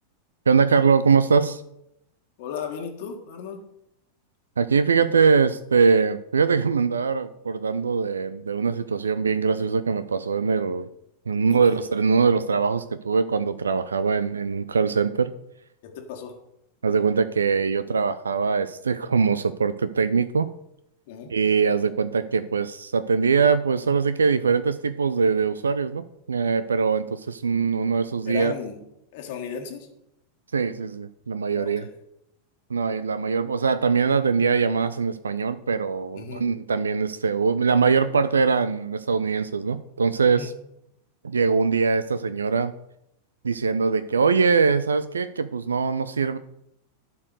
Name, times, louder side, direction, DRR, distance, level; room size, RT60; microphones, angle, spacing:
voice 1, 0.5-1.6 4.6-10.9 11.3-15.3 16.8-20.5 21.3-28.5 30.5-31.8 32.7-40.5 41.2-42.7 43.4-46.4, right 5 dB, 70° right, 14 dB, 0.4 m, -22 dB
voice 2, 2.4-3.6 11.5-11.8 15.8-16.4 21.1-21.3 28.2-28.8 29.1-29.9 31.5-31.9 36.1-36.4 40.3-40.5, left 7 dB, 50° left, 2 dB, 1.7 m, -35 dB
11.5 x 4.7 x 6.4 m, 0.80 s
figure-of-eight pair, 90°, 0 cm